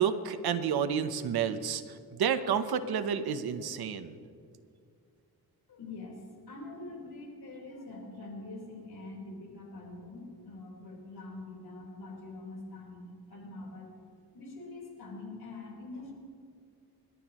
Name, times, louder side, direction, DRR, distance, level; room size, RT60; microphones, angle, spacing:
voice 1, 0.0-1.8 2.2-4.2, right 8 dB, 70° right, 10 dB, 1.0 m, -30 dB
voice 2, 5.7-13.9 14.3-16.1, left 2 dB, 70° left, -1 dB, 4.2 m, -44 dB
28.5 x 12.0 x 3.0 m, 2.3 s
cardioid pair, 95°, 39 cm